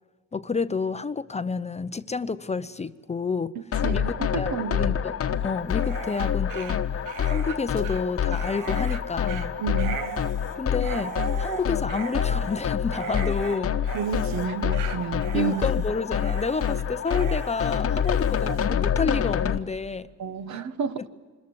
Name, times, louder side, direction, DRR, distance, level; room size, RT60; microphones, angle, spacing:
voice 1, 0.3-3.6 3.9-4.5 4.8-9.6 10.5-13.7 15.3-20.1 21.0-21.1, left 4 dB, 20° left, 13 dB, 0.6 m, -30 dB
sound 1, 3.7-19.6, left 8 dB, 50° left, 1.0 m, -27 dB
voice 2, 3.8-4.9 9.6-10.0 13.9-15.7 20.2-21.0, right 6 dB, 65° right, 10 dB, 1.4 m, -30 dB
Dog, 5.7-18.7, right 9 dB, 90° right, 1.2 m, -38 dB
26.0 x 14.5 x 9.5 m, 1.5 s
cardioid pair, 90°, 30 cm